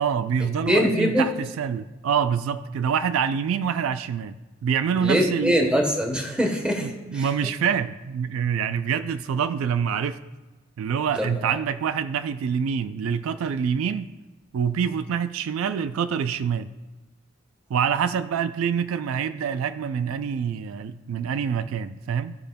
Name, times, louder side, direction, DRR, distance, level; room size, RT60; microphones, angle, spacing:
voice 1, 0.0-4.4 4.6-5.7 6.8-10.2 10.8-14.1 14.5-16.7 17.7-22.4, right 7 dB, 75° right, 12 dB, 0.3 m, -26 dB
voice 2, 0.7-1.3 5.0-7.3 11.2-11.3, equal, 5° right, 1 dB, 1.1 m, -23 dB
15.0 x 5.1 x 2.2 m, 1.2 s
head